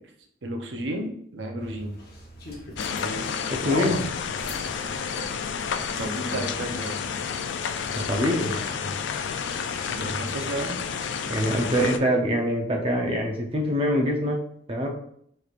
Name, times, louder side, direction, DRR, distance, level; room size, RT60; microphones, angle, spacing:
voice 1, 0.4-1.9 6.0-7.0 9.8-10.8, right 1 dB, 85° right, 3 dB, 0.7 m, -32 dB
sound 1, 1.6-8.1, left 1 dB, 55° left, 0.8 m, -39 dB
sound 2, 2.8-12.0, left 6 dB, 80° left, 0.3 m, -30 dB
voice 2, 3.5-4.1 8.1-9.0 11.3-14.4 14.7-14.9, equal, 30° right, 0 dB, 0.7 m, -24 dB
4.8 x 3.2 x 2.4 m, 0.65 s
head